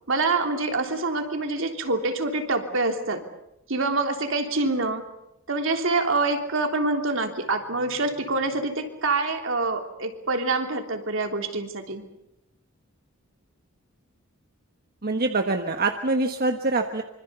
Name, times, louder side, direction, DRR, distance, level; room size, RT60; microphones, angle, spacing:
voice 1, 0.1-3.2 3.7-5.0 5.5-12.1, right 3 dB, 65° right, 4 dB, 3.4 m, -26 dB
voice 2, 15.0-17.0, right 3 dB, 50° right, 5 dB, 1.4 m, -24 dB
26.0 x 25.5 x 6.9 m, 0.85 s
head